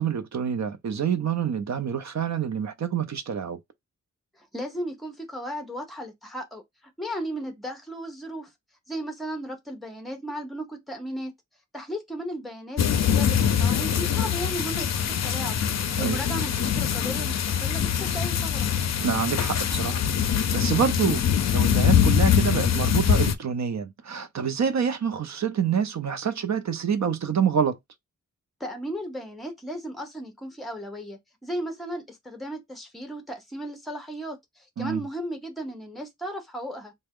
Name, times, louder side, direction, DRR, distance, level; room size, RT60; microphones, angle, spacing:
voice 1, 0.0-3.6 16.0-16.2 19.0-20.0 20.3-21.2 21.5-27.8 34.8-35.1, right 7 dB, 60° right, 0.6 m, -27 dB
voice 2, 4.4-6.6 7.0-8.5 8.9-11.3 11.7-15.6 16.0-18.7 28.6-36.9, equal, ahead, 0.7 m, -35 dB
sound 1, 12.8-23.4, left 8 dB, 60° left, 0.5 m, -23 dB
3.3 x 2.1 x 3.6 m
wide cardioid pair, 135°, 31 cm